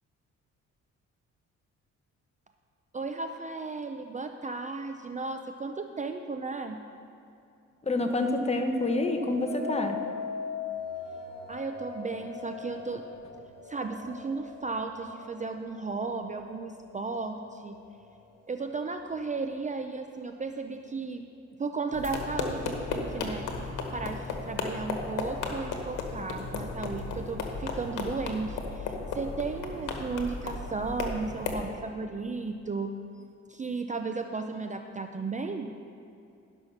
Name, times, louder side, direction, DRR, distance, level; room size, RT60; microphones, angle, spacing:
voice 1, 2.9-6.8 11.5-13.0 13.7-17.8 18.5-21.3 21.6-32.9 33.5-35.7, right 4 dB, 25° right, 5 dB, 0.5 m, -35 dB
voice 2, 7.9-10.0, left 2 dB, 20° left, 5 dB, 1.0 m, -27 dB
sound 1, 8.7-17.9 18.4-18.9, left 6 dB, 55° left, 2.1 m, -41 dB
sound 2, 21.9-31.6, left 4 dB, 90° left, 1.2 m, -35 dB
11.0 x 6.2 x 5.7 m, 2.6 s
cardioid pair, 90°, 30 cm